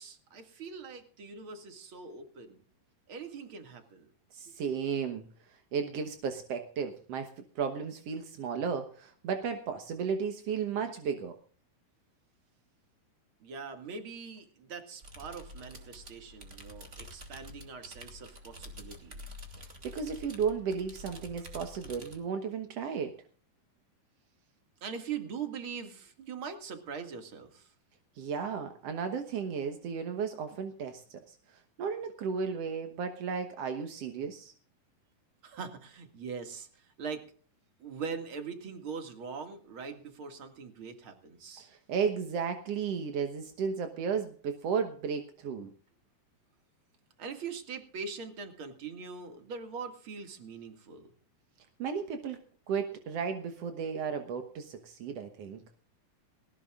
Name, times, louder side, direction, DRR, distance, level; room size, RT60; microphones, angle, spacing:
voice 1, 0.0-2.6 3.1-4.1 13.4-19.2 24.8-27.7 35.4-37.3 37.8-41.7 47.2-51.1, right 5 dB, 40° right, 6 dB, 2.3 m, -42 dB
voice 2, 4.3-5.2 5.5-11.4 19.8-23.2 28.1-34.5 41.6-45.7 51.8-52.4 52.7-55.6, right 6 dB, 70° right, 6 dB, 1.5 m, -34 dB
sound 1, 15.0-22.2, left 1 dB, 25° right, 2.0 m, -48 dB
19.5 x 18.5 x 2.4 m, 0.43 s
omnidirectional pair, 4.5 m